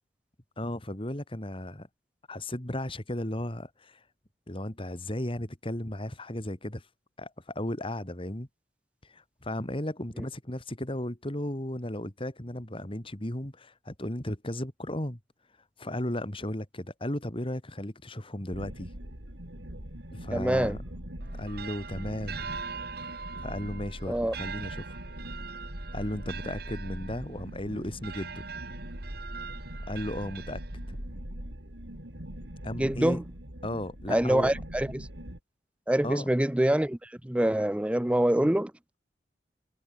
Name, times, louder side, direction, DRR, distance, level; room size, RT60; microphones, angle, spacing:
voice 1, 0.6-1.9 2.3-4.0 4.5-6.9 7.2-8.5 9.0-15.2 15.8-18.9 20.1-20.8 21.4-22.6 23.4-25.0 25.9-28.4 29.9-30.6 30.9-31.0 32.6-33.2 33.6-34.5 36.0-36.2, left 1 dB, 30° left, 2.9 m, -35 dB
sound 1, 18.5-35.4, equal, 90° right, 5.2 m, -41 dB
voice 2, 20.3-20.8 24.1-24.4 32.8-33.2 34.1-35.1 35.9-38.7, right 1 dB, 5° right, 0.5 m, -25 dB
sound 2, 21.2-31.1, right 6 dB, 60° right, 2.1 m, -43 dB
head